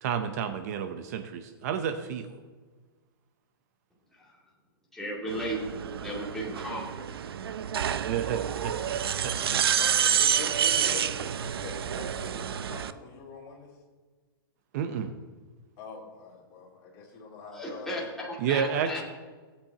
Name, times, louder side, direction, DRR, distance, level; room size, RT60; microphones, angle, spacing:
voice 1, 0.0-2.3 8.0-9.6 14.7-15.1 18.4-19.0, right 8 dB, 45° right, 8 dB, 0.8 m, -31 dB
voice 2, 4.9-5.6 6.0-7.0 17.6-19.0, equal, 5° left, -5 dB, 2.4 m, -35 dB
sound 1, 5.3-12.9, right 9 dB, 85° right, 0.6 m, -28 dB
voice 3, 9.8-13.7 15.8-18.1, left 4 dB, 35° left, -2 dB, 3.2 m, -43 dB
18.0 x 8.5 x 2.9 m, 1.4 s
hypercardioid pair, 155°, 12 cm